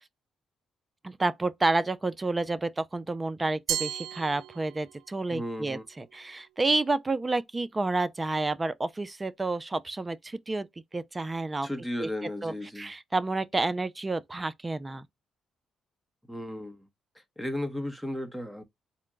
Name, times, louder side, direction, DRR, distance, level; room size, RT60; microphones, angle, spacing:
voice 1, 1.0-10.7 10.9-11.7 12.0-12.1 12.4-15.0, right 2 dB, 20° right, 0.6 m, -30 dB
Glass, 3.7-5.1, right 11 dB, 80° right, 0.3 m, -34 dB
voice 2, 5.3-5.8 11.6-12.9 16.3-16.9 17.1-18.6, left 1 dB, ahead, 1.1 m, -35 dB
4.3 x 2.2 x 3.8 m
cardioid pair, 90°, 0 cm